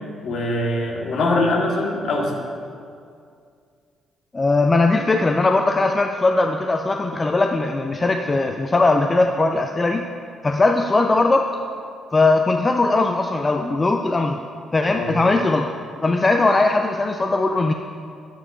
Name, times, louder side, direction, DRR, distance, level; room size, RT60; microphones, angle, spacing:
voice 1, 0.2-2.5 14.9-15.2, left 2 dB, 60° left, -1 dB, 1.3 m, -22 dB
voice 2, 4.3-10.0 10.4-11.6 12.1-14.4 14.7-15.7 16.0-17.7, left 3 dB, 30° left, 4 dB, 0.4 m, -19 dB
9.6 x 9.1 x 2.4 m, 2.3 s
hypercardioid pair, 45°, 0 cm